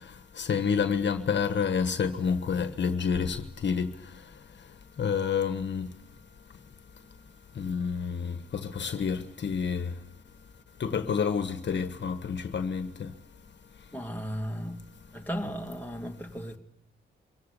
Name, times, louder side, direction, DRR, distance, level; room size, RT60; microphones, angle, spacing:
voice 1, 0.4-3.4 3.6-3.9 5.0-5.9 7.6-8.4 8.7-9.9 10.8-13.1, left 6 dB, 60° left, 1.4 m, -28 dB
voice 2, 13.9-16.6, equal, 10° left, 2.2 m, -36 dB
24.0 x 16.5 x 8.4 m
cardioid pair, 70°, 21 cm